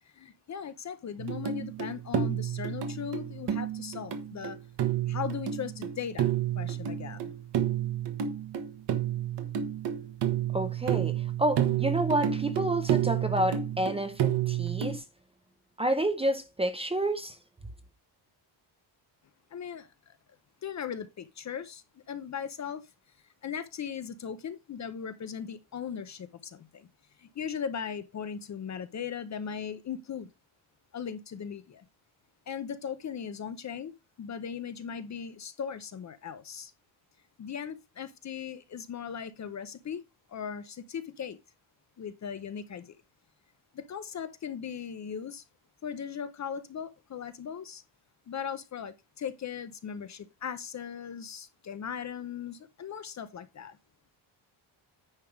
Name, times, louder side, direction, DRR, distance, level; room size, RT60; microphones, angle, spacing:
voice 1, 0.0-4.6 5.1-7.3 19.5-20.1 20.6-22.9 23.4-26.9 27.2-30.3 30.9-31.8 32.5-36.7 37.4-40.0 40.3-41.4 42.0-43.0 43.7-45.4 45.8-47.8 48.3-53.8, left 7 dB, 35° left, 0.6 m, -38 dB
sound 1, 1.2-15.0, right 10 dB, 55° right, 1.3 m, -30 dB
voice 2, 10.5-15.0 15.8-17.4, right 1 dB, 10° right, 0.6 m, -29 dB
9.7 x 3.4 x 5.9 m
cardioid pair, 180°, 48 cm